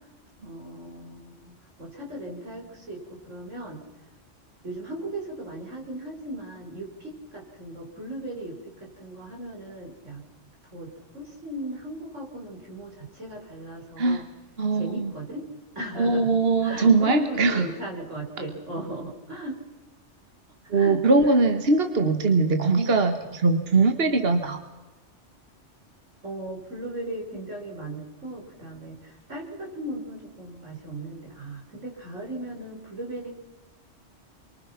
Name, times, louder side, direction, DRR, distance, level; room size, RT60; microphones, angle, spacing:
voice 1, 0.4-3.8 4.6-10.2 10.7-10.9 11.1-14.2 14.7-15.5 15.8-19.6 20.7-21.4 26.2-33.4, right 1 dB, 85° right, -1 dB, 6.1 m, -37 dB
voice 2, 14.6-15.1 16.0-17.7 20.7-24.6, right 3 dB, 55° right, 6 dB, 1.7 m, -21 dB
29.5 x 23.5 x 6.0 m, 1.1 s
omnidirectional pair, 1.2 m